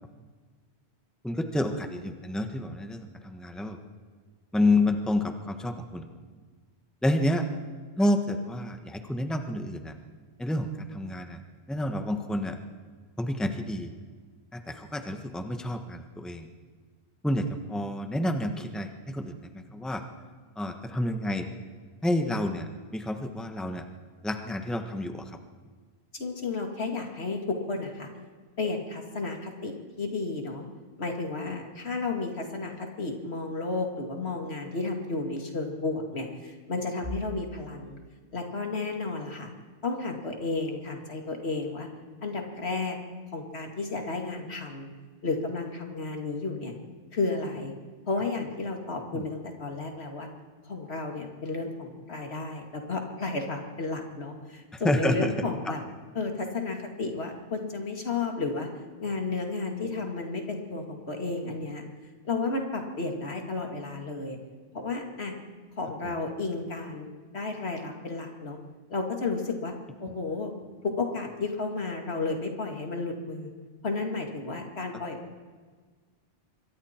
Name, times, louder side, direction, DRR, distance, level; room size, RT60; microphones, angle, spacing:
voice 1, 1.2-3.8 4.5-6.1 7.0-7.5 8.0-9.9 10.4-11.4 11.7-12.6 13.2-13.9 14.5-16.5 17.2-20.0 20.6-21.5 22.0-23.8 24.2-25.4 49.1-49.2 54.7-55.3 66.0-66.1, left 1 dB, ahead, 5 dB, 1.2 m, -29 dB
voice 2, 26.1-28.1 28.6-30.6 31.0-38.0 38.3-39.5 39.8-41.9 42.2-43.0 43.3-44.9 45.2-46.7 47.1-47.7 48.1-50.3 50.7-55.8 56.1-58.7 59.0-61.8 62.2-64.4 64.7-65.3 65.8-67.1 67.3-68.6 68.9-69.7 70.0-70.5 70.8-73.5 73.8-75.4, left 3 dB, 75° left, 3 dB, 2.5 m, -32 dB
26.0 x 22.5 x 4.5 m, 1.5 s
omnidirectional pair, 1.1 m